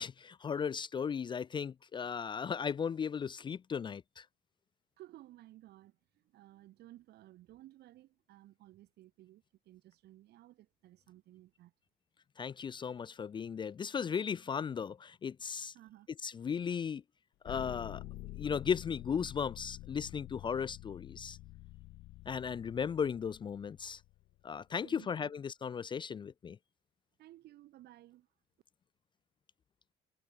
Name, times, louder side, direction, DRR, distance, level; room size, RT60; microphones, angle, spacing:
voice 1, 0.0-4.3 12.4-15.7 16.2-17.0 17.4-18.0 18.4-21.4 22.3-24.0 24.4-26.6, left 7 dB, 30° left, 0.4 m, -36 dB
voice 2, 5.0-11.7 15.7-16.1 24.8-25.3 27.2-28.3, right 15 dB, 75° right, 3.0 m, -57 dB
sound 1, 17.4-24.4, left 19 dB, 80° left, 0.8 m, -48 dB
cardioid pair, 110°, 17 cm